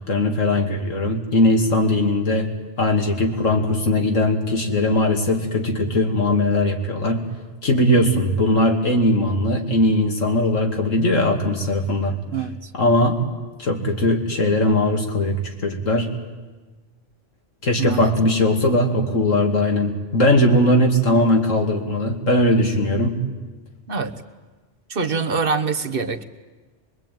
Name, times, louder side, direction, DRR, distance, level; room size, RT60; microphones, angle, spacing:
voice 1, 0.1-2.5 2.8-7.2 7.6-12.2 12.7-13.2 13.6-16.1 17.6-23.2, left 1 dB, 90° left, 3 dB, 2.9 m, -19 dB
voice 2, 12.3-12.7 17.8-18.1 23.9-24.1 24.9-26.2, right 5 dB, 50° right, 9 dB, 1.3 m, -24 dB
24.0 x 22.5 x 9.3 m, 1.3 s
omnidirectional pair, 1.3 m